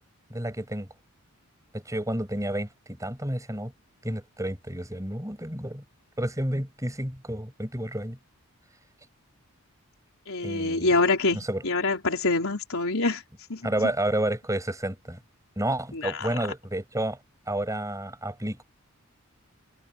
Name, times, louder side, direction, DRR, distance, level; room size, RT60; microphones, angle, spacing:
voice 1, 0.3-0.9 1.7-2.7 3.0-3.7 4.0-5.8 6.2-8.2 10.4-10.9 11.3-11.6 13.6-15.2 15.6-17.2 17.5-18.6, right 1 dB, 15° right, 7.8 m, -30 dB
voice 2, 10.3-13.2 13.5-13.9 15.9-16.3, left 3 dB, 65° left, 4.3 m, -26 dB
head